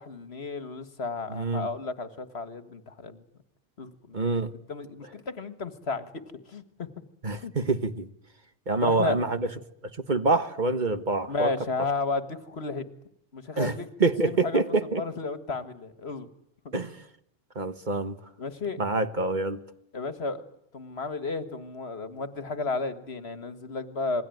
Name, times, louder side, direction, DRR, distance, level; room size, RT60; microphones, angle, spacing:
voice 1, 0.0-3.2 3.8-4.2 4.7-6.1 6.5-6.9 7.4-7.5 8.8-9.2 11.3-12.9 13.3-13.9 14.2-14.6 15.0-16.3 16.7-16.8 18.4-18.8 19.9-20.4 20.7-24.2, left 3 dB, 65° left, 11 dB, 2.0 m, -33 dB
voice 2, 1.3-1.7 4.1-4.5 7.2-8.1 8.7-9.5 10.1-11.5 13.6-13.7 14.0-15.0 16.7-17.0 17.5-18.2 18.8-19.6, right 3 dB, 45° right, 10 dB, 1.5 m, -26 dB
27.5 x 21.0 x 9.2 m, 0.75 s
omnidirectional pair, 1.2 m